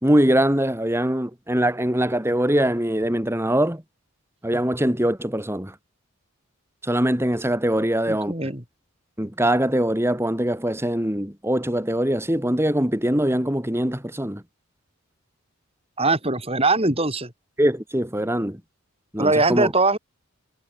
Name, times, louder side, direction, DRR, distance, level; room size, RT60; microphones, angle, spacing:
voice 1, 0.0-3.8 4.4-5.8 6.8-8.3 9.2-14.4 17.6-18.6 19.1-19.7, right 1 dB, 10° right, 2.3 m, -22 dB
voice 2, 8.1-8.6 16.0-17.3 19.2-20.0, right 2 dB, 25° right, 6.2 m, -21 dB
head